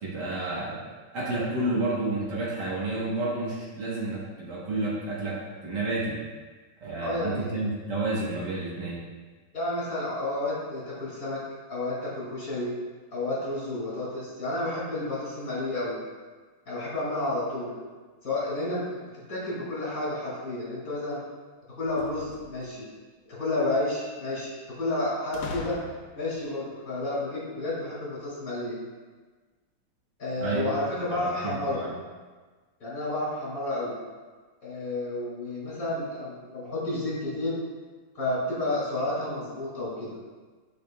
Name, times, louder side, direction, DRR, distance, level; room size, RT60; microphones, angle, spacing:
voice 1, 0.0-0.8 1.1-6.2 6.8-9.0 30.4-30.7 31.1-31.9, right 2 dB, 55° right, -6 dB, 1.8 m, -30 dB
voice 2, 7.0-7.6 9.5-11.4 11.7-12.7 13.1-16.0 16.7-17.7 18.2-18.8 19.3-21.2 21.8-22.9 23.3-25.8 26.2-28.8 30.2-31.8 32.8-34.0 34.6-37.6 38.1-40.1, left 2 dB, 45° left, -7 dB, 2.5 m, -31 dB
sound 1, 21.8-22.9 25.3-26.4, left 4 dB, 80° left, 1.5 m, -40 dB
9.7 x 5.2 x 2.3 m, 1.4 s
omnidirectional pair, 2.3 m